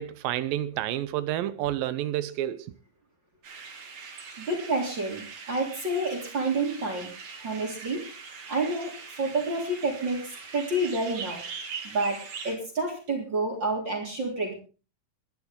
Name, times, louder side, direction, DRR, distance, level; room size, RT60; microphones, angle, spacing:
voice 1, 0.0-2.8, right 13 dB, 80° right, 2.5 m, -30 dB
sound 1, 3.4-12.6, right 5 dB, 55° right, 3.3 m, -42 dB
voice 2, 4.4-7.1 7.4-8.1 8.5-10.2 10.5-11.4 11.8-14.5, right 2 dB, 30° right, 3.8 m, -29 dB
22.5 x 11.0 x 3.7 m
omnidirectional pair, 4.2 m